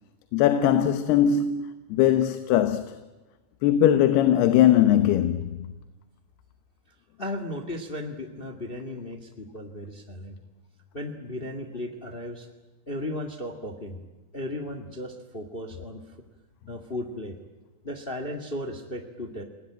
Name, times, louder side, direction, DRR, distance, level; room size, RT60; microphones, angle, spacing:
voice 1, 0.3-3.0 3.6-5.7, left 10 dB, 85° left, 3.0 m, -20 dB
voice 2, 7.2-10.4 10.9-12.5 12.9-14.0 14.3-16.0 16.7-17.4 17.8-19.4, left 1 dB, 40° left, 0.8 m, -35 dB
29.5 x 19.0 x 9.0 m
omnidirectional pair, 4.5 m